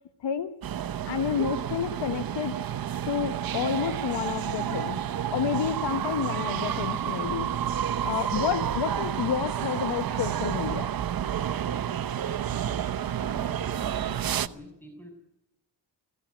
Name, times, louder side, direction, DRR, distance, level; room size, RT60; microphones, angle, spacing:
voice 1, 0.2-0.5 1.1-2.6 3.0-5.0 5.3-7.5 8.0-11.0, left 8 dB, 80° left, 9 dB, 1.2 m, -30 dB
sound 1, 0.6-14.5, right 10 dB, 55° right, 0.9 m, -30 dB
voice 2, 13.2-15.1, equal, 5° left, 4 dB, 6.4 m, -46 dB
20.5 x 15.0 x 9.4 m, 0.82 s
cardioid pair, 90°, 43 cm